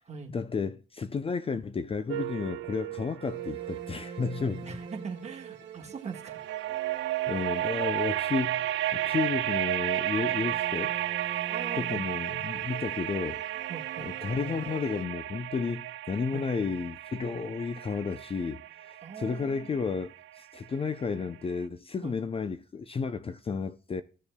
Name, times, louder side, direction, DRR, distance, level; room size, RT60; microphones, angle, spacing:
voice 1, 0.3-4.7 7.3-11.0 11.7-13.4 14.0-24.0, left 5 dB, 30° left, 0.5 m, -32 dB
sound 1, 2.1-5.4 6.1-21.0, right 14 dB, 80° right, 0.4 m, -33 dB
sound 2, 3.3-9.7 10.1-15.1, right 6 dB, 60° right, 1.4 m, -46 dB
voice 2, 4.6-6.4 9.1-9.3 11.5-12.0 13.7-14.1 16.3-16.5 19.0-19.9 22.0-22.2, right 5 dB, 35° right, 1.6 m, -41 dB
16.0 x 7.0 x 2.2 m
cardioid pair, 90°, 20 cm